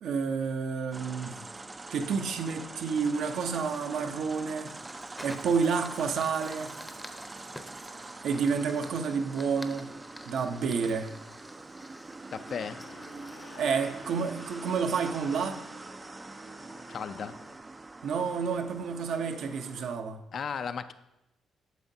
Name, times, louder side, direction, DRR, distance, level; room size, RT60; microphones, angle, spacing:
voice 1, 0.0-1.4 1.9-4.7 5.2-6.7 8.2-9.9 10.3-11.1 13.6-15.6 18.0-20.2, right 5 dB, 75° right, 0.6 m, -30 dB
sound 1, 0.9-19.9, right 2 dB, 20° right, 0.3 m, -44 dB
Fire, 3.5-14.8, left 1 dB, 10° left, 0.6 m, -50 dB
voice 2, 12.3-12.8 16.9-17.4 20.3-20.9, left 6 dB, 55° left, 0.4 m, -35 dB
Aircraft, 12.4-17.6, left 5 dB, 80° left, 0.9 m, -52 dB
9.1 x 7.1 x 2.7 m
cardioid pair, 90°, 0 cm